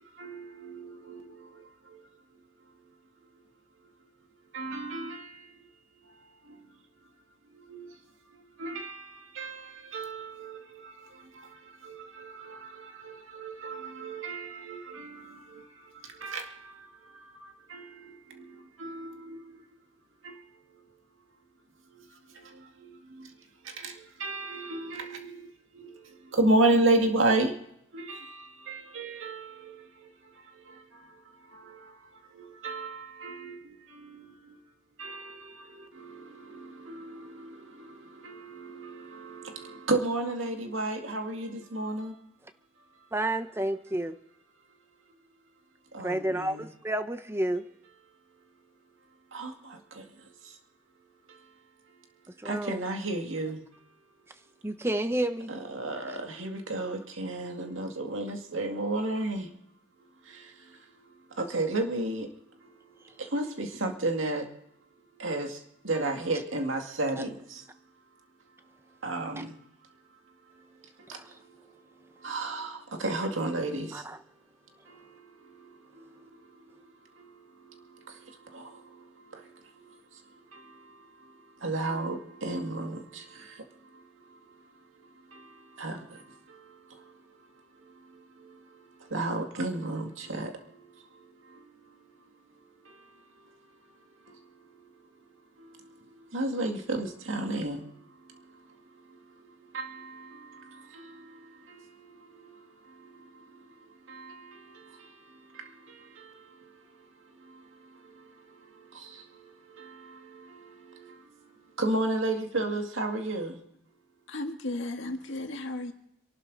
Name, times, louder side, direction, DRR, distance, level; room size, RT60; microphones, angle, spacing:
voice 1, 0.2-1.4 4.5-5.4 7.7-7.9 8.6-10.9 11.4-11.5 11.8-15.6 16.2-16.7 17.2-18.4 18.8-19.4 20.2-20.4 22.8-23.3 23.8-23.9 24.2-25.5 25.8-25.9 26.3-27.5 27.9-29.8 31.5-31.9 32.4-33.6 33.9-34.3 35.0-42.1 45.9-46.7 49.3-50.0 52.4-53.6 55.5-59.5 60.3-60.4 61.4-62.3 63.2-64.5 65.2-65.6 65.8-67.6 69.0-69.6 71.1-71.2 72.2-74.0 78.5-78.7 79.3-79.4 80.5-80.6 81.6-83.2 85.3-85.5 85.8-86.2 89.1-90.5 96.3-97.8 99.7-100.6 100.9-101.1 104.1-104.6 105.5-105.6 106.2-106.3 108.9-109.2 109.8-111.1 111.8-113.6, right 2 dB, 90° right, 2.1 m, -32 dB
voice 2, 43.1-44.2 46.0-47.6 52.4-52.8 54.6-55.5 71.1-71.2 73.9-74.2, right 1 dB, 15° right, 0.9 m, -30 dB
voice 3, 114.3-115.9, left 2 dB, 75° left, 1.8 m, -35 dB
27.0 x 12.0 x 4.0 m
head